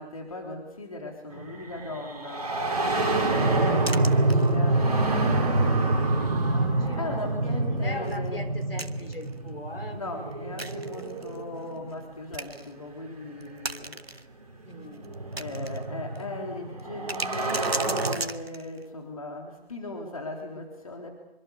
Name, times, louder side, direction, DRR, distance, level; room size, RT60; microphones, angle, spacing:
voice 1, 0.0-2.5 3.3-4.9 7.0-8.5 9.9-14.0 15.3-21.1, left 2 dB, 35° left, 2 dB, 3.6 m, -38 dB
sound 1, 1.4-12.0 13.3-13.4 14.4-18.1, right 2 dB, 35° right, 4.9 m, -27 dB
voice 2, 3.6-4.4 6.1-7.3 7.7-10.0 14.6-15.1, left 1 dB, 65° left, 6 dB, 5.4 m, -40 dB
sound 2, 3.9-4.8 5.3-5.4 5.8-6.0 6.4-6.5 8.1-9.3 10.6-11.4 11.9-12.0 12.3-12.7 13.4-14.2 14.7-15.8 16.1-16.2 16.8-18.8, right 2 dB, 70° right, 2.0 m, -36 dB
26.5 x 25.0 x 6.8 m, 0.90 s
figure-of-eight pair, 160°, 32 cm